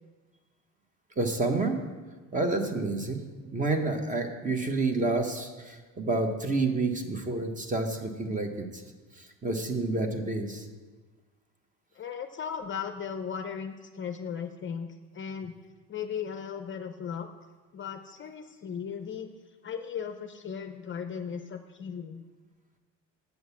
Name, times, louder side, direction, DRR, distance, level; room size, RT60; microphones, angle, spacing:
voice 1, 1.2-1.8 2.3-8.8 9.2-10.7, right 3 dB, 20° right, 5 dB, 1.2 m, -29 dB
voice 2, 11.9-15.5 15.9-17.3 17.7-19.3 19.6-22.2, left 7 dB, 30° left, 7 dB, 0.6 m, -37 dB
8.2 x 6.4 x 7.1 m, 1.3 s
supercardioid pair, 105°, 37 cm